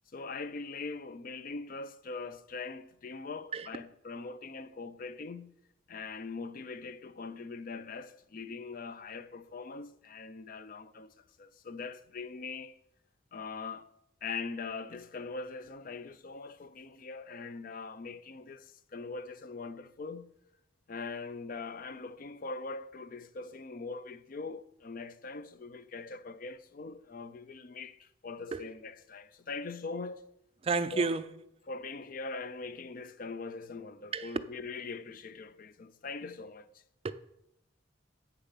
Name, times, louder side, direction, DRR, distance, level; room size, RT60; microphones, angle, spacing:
voice 1, 0.1-5.5 5.9-12.8 13.3-13.9 14.2-20.3 20.9-30.2 30.9-31.2 31.7-36.7, left 4 dB, 45° left, 0.4 m, -42 dB
voice 2, 30.6-31.2 34.1-34.3 37.0-37.1, right 4 dB, 30° right, 0.3 m, -30 dB
8.2 x 6.9 x 5.6 m
head